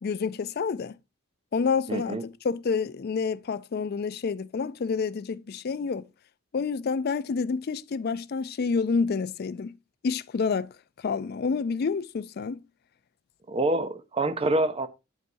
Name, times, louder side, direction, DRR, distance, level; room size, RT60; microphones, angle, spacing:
voice 1, 0.0-1.0 1.5-2.2 2.4-6.1 6.5-9.8 10.0-10.7 11.0-12.6, left 5 dB, 45° left, 0.3 m, -28 dB
voice 2, 1.9-2.2 13.5-14.9, right 2 dB, 25° right, 0.5 m, -26 dB
8.1 x 7.4 x 2.6 m
head